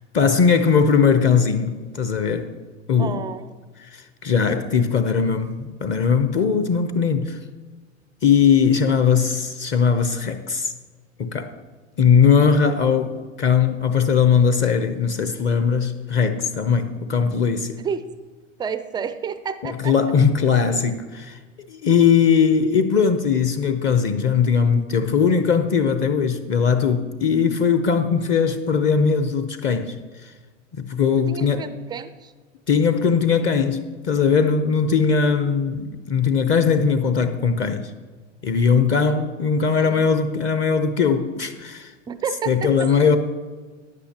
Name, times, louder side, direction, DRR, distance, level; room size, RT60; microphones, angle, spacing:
voice 1, 0.1-2.5 2.9-3.2 3.8-7.4 8.2-10.7 11.2-11.6 12.0-17.8 19.6-21.4 21.7-30.0 30.2-30.3 30.8-31.7 32.7-37.9 38.4-41.9 42.5-43.2, left 6 dB, 30° left, 0.7 m, -19 dB
voice 2, 3.0-3.5 17.8-18.0 18.6-19.9 31.3-32.3 39.8-40.1 42.1-42.9, right 7 dB, 15° right, 0.3 m, -30 dB
14.5 x 9.8 x 2.9 m
hypercardioid pair, 100°, 37 cm